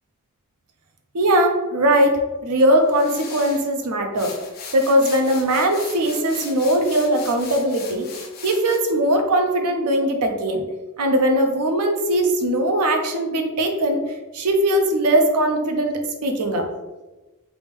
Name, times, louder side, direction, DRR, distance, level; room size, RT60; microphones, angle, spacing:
voice 1, 1.1-4.3 4.7-8.1 8.4-10.6 11.0-14.0 14.3-16.6, right 1 dB, 90° right, 4 dB, 0.6 m, -20 dB
sound 1, 2.8-3.7 4.1-8.8, left 5 dB, 45° left, 0.5 m, -38 dB
3.4 x 2.5 x 3.5 m, 1.1 s
head